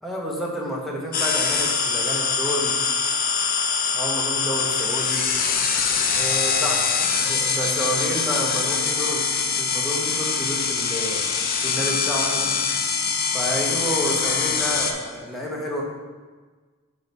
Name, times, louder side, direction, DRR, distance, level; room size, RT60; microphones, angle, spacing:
voice 1, 0.0-2.8 3.9-5.3 6.1-9.2 9.6-11.3 11.6-12.5 13.3-15.8, equal, ahead, -4 dB, 1.2 m, -29 dB
sound 1, 1.1-14.9, left 5 dB, 45° left, 0.6 m, -23 dB
6.2 x 3.8 x 5.4 m, 1.4 s
head